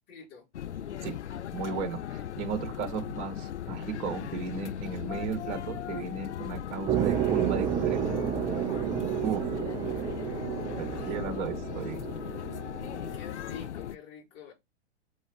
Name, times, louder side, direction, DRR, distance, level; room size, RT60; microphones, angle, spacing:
voice 1, 0.1-0.5 10.9-11.6 13.1-14.5, left 6 dB, 35° left, 4.7 m, -46 dB
sound 1, 0.5-14.0, left 10 dB, 80° left, 0.5 m, -38 dB
voice 2, 1.5-8.0 9.2-9.6 10.8-12.1, right 5 dB, 40° right, 2.1 m, -35 dB
sound 2, 6.9-13.2, right 10 dB, 15° right, 0.5 m, -31 dB
6.3 x 6.2 x 3.2 m
figure-of-eight pair, 105°, 34 cm